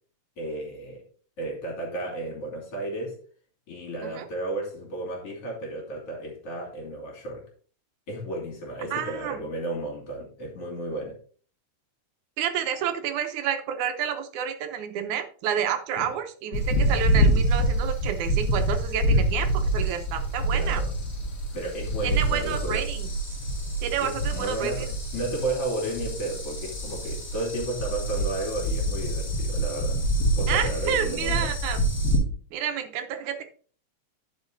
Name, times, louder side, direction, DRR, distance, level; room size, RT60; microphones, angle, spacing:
voice 1, 0.4-1.0 1.4-3.2 3.7-7.5 8.1-11.2 16.0-16.1 20.5-20.9 21.5-22.9 24.0-30.0 30.4-31.4, right 2 dB, 50° left, -2 dB, 3.8 m, -33 dB
voice 2, 8.9-9.4 12.4-20.8 22.0-23.4 23.8-24.9 30.5-31.8 32.5-33.4, right 8 dB, 85° right, 7 dB, 2.4 m, -30 dB
sound 1, 16.5-32.2, right 1 dB, 35° left, 2.5 m, -26 dB
10.5 x 5.5 x 3.9 m, 0.43 s
omnidirectional pair, 3.3 m